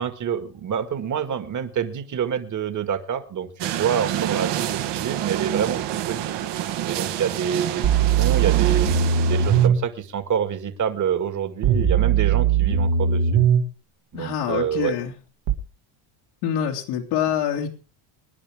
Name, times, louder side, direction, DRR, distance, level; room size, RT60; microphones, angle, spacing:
voice 1, 0.0-5.8 6.1-6.2 6.9-8.9 9.3-13.4 14.1-14.9, right 8 dB, 35° right, 8 dB, 2.1 m, -27 dB
sound 1, 3.6-9.7, right 11 dB, 55° right, 1.7 m, -28 dB
sound 2, 7.8-9.8 11.6-13.6 15.5-15.6, right 7 dB, 70° right, 2.6 m, -19 dB
voice 2, 14.1-15.1 16.4-17.7, left 9 dB, 80° left, -1 dB, 3.0 m, -25 dB
24.5 x 10.5 x 3.7 m, 0.34 s
cardioid pair, 125°, 50 cm